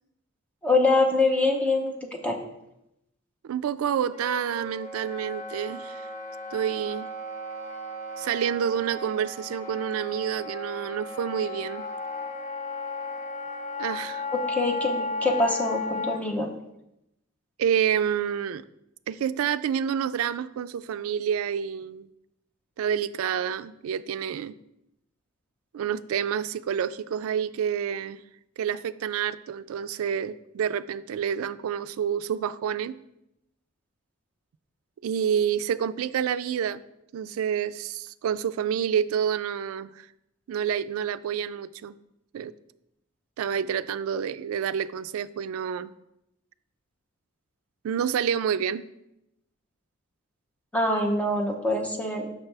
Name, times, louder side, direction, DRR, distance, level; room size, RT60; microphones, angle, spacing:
voice 1, 0.6-2.4 14.3-16.5 50.7-52.3, left 2 dB, 5° left, 2 dB, 0.8 m, -24 dB
voice 2, 3.4-6.1 6.5-7.1 8.2-11.8 13.8-14.2 17.6-18.6 19.1-22.1 22.8-24.6 25.7-28.2 28.6-33.0 35.0-36.8 37.1-40.1 40.5-41.9 42.3-42.5 43.4-45.9 47.8-48.8, right 8 dB, 80° right, 13 dB, 0.3 m, -28 dB
Wind instrument woodwind instrument, 4.1-16.2, left 2 dB, 35° left, 0.7 m, -35 dB
6.0 x 5.8 x 3.3 m, 0.84 s
head